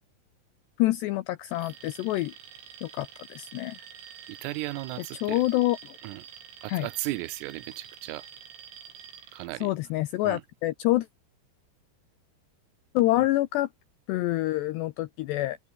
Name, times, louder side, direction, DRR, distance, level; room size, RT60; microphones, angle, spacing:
voice 1, 0.8-2.3 2.8-3.8 5.2-6.0 6.7-6.9 9.6-11.1 12.9-13.7 14.1-15.6, left 17 dB, 85° left, 2.5 m, -27 dB
Alarm, 1.5-9.5, right 8 dB, 70° right, 6.4 m, -47 dB
voice 2, 4.3-5.4 6.0-6.2 6.6-8.3 9.3-9.7 10.3-10.4, right 19 dB, 90° right, 3.7 m, -35 dB
omnidirectional pair, 5.8 m